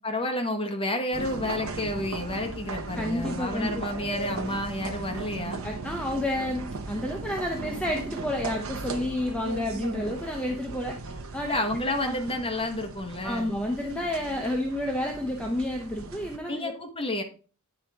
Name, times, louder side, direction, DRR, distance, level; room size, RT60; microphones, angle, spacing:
voice 1, 0.0-5.6 11.5-13.5 16.5-17.2, left 1 dB, 25° left, 4 dB, 1.1 m, -30 dB
sound 1, 1.1-16.4, right 3 dB, 65° right, 0.7 m, -37 dB
voice 2, 2.9-3.8 5.6-11.0 11.3-11.6 12.1-12.2 13.2-16.7, left 1 dB, 5° left, 1 dB, 0.6 m, -30 dB
9.5 x 4.0 x 3.4 m, 0.37 s
head